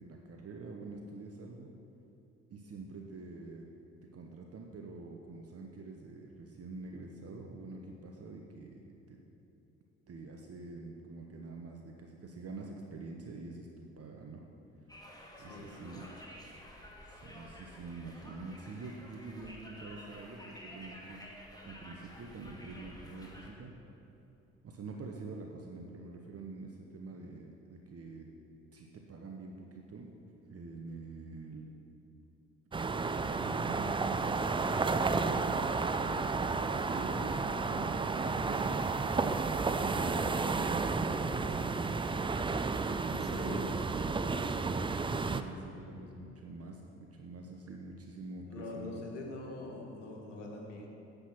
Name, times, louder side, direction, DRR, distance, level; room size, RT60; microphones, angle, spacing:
voice 1, 0.0-1.7 2.5-3.7 4.0-9.2 10.1-14.4 15.4-16.1 17.0-21.2 21.6-23.7 24.6-28.3 28.7-30.1 30.4-31.7 32.8-36.1 36.5-38.8 39.8-42.2 42.9-43.7 44.2-49.0, right 3 dB, 40° right, 1 dB, 1.1 m, -46 dB
Conversation, 14.9-23.5, equal, 10° left, 2.1 m, -51 dB
voice 2, 15.4-16.1 43.1-43.8 48.5-50.9, left 2 dB, 80° left, 0 dB, 1.3 m, -44 dB
sound 1, 32.7-45.4, right 4 dB, 15° right, 0.5 m, -32 dB
10.0 x 7.9 x 6.1 m, 2.8 s
figure-of-eight pair, 45°, 37 cm